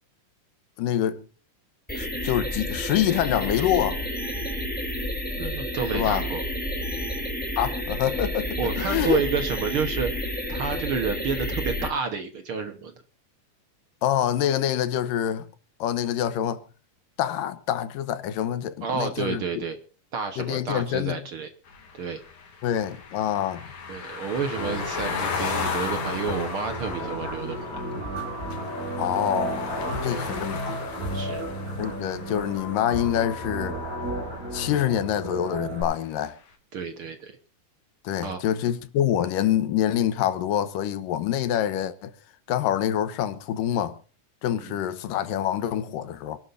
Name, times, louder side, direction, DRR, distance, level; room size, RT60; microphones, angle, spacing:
voice 1, 0.8-1.2 2.0-4.0 5.9-6.3 7.6-9.2 14.0-15.5 15.8-16.6 17.2-19.6 20.4-21.2 22.6-23.7 29.0-30.8 31.8-33.8 34.5-36.4 38.0-42.1 42.5-44.0 44.4-46.4, left 10 dB, 90° left, 2.7 m, -26 dB
sound 1, 1.9-11.9, equal, 5° left, 2.8 m, -30 dB
voice 2, 5.4-6.4 8.6-10.1 10.5-12.9 18.8-19.8 20.1-21.5 21.9-22.2 23.9-27.8 30.0-30.3 31.1-31.4 36.7-37.4 38.2-38.4 44.5-44.8, right 5 dB, 55° right, 1.6 m, -30 dB
sound 2, 21.7-33.7, left 5 dB, 70° left, 4.0 m, -35 dB
sound 3, 24.6-35.8, right 1 dB, 25° right, 7.5 m, -33 dB
26.5 x 12.0 x 2.7 m
omnidirectional pair, 3.8 m